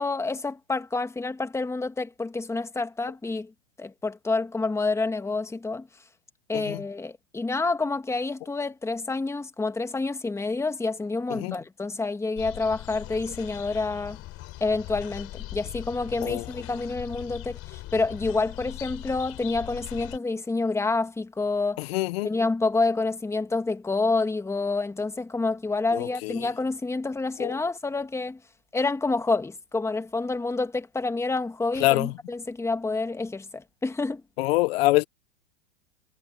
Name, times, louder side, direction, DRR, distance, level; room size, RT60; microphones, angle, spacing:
voice 1, 0.0-3.5 3.8-5.9 6.5-14.2 14.6-21.8 22.2-28.4 28.7-34.2, left 3 dB, 10° left, 2.0 m, -28 dB
sound 1, 12.4-20.2, left 17 dB, 40° left, 4.3 m, -40 dB
voice 2, 21.9-22.3 25.9-26.3 27.4-27.5 31.8-32.1 34.4-35.0, left 20 dB, 60° left, 1.2 m, -24 dB
hypercardioid pair, 110°, 34 cm